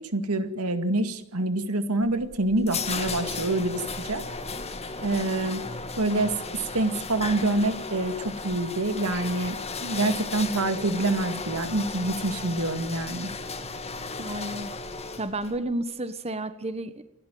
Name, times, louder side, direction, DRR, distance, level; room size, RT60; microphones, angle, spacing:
voice 1, 0.0-4.2 5.0-5.6 6.0-6.3 6.7-13.3, right 2 dB, 85° right, 9 dB, 2.1 m, -26 dB
sound 1, 2.0-15.6, left 4 dB, 30° left, 2.1 m, -35 dB
voice 2, 14.2-14.7 15.2-17.0, right 1 dB, 30° right, 11 dB, 1.3 m, -31 dB
28.5 x 12.5 x 9.3 m, 0.85 s
head